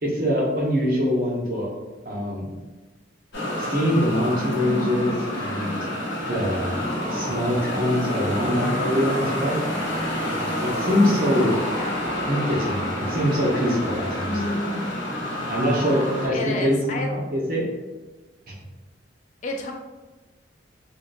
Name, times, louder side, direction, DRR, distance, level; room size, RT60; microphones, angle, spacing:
voice 1, 0.0-1.7 2.0-2.5 3.6-5.8 6.3-6.8 7.1-9.6 10.3-11.5 12.3-14.4 15.5-17.6, equal, 50° right, -3 dB, 0.7 m, -24 dB
sound 1, 3.3-16.3, left 1 dB, 65° left, 0.8 m, -28 dB
voice 2, 11.7-12.1 16.3-17.1 19.4-19.7, left 2 dB, 40° left, 2 dB, 0.3 m, -31 dB
2.7 x 2.2 x 2.5 m, 1.2 s
head